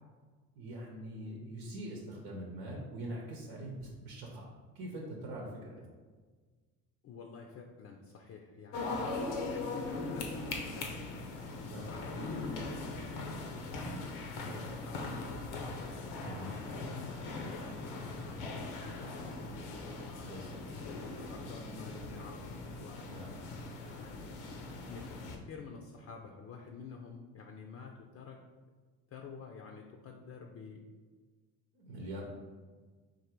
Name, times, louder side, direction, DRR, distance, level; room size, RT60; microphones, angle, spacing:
voice 1, 0.6-4.5 4.7-5.8 11.7-12.0 16.2-16.5 20.2-21.0 23.1-23.4 31.7-32.2, right 1 dB, 80° right, -1 dB, 0.9 m, -43 dB
voice 2, 7.0-13.1 13.4-15.7 16.5-23.0 23.8-24.6 24.9-28.4 29.1-30.9, left 5 dB, 40° left, 2 dB, 0.5 m, -50 dB
sound 1, 8.7-25.4, left 3 dB, 85° left, 0.8 m, -40 dB
3.8 x 2.6 x 4.5 m, 1.4 s
supercardioid pair, 85°, 38 cm